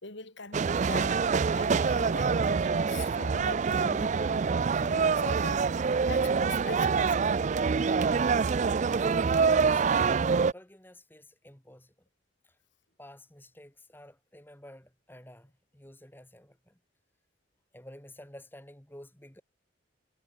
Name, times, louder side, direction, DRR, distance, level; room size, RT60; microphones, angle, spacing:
voice 1, 0.0-5.7 6.1-7.4 8.6-8.7, left 3 dB, 60° left, 3.3 m, -43 dB
sound 1, 0.5-10.5, right 5 dB, 35° right, 0.3 m, -26 dB
voice 2, 9.0-12.1 12.4-12.6 13.0-16.8 17.7-19.4, left 1 dB, 10° left, 3.6 m, -51 dB
head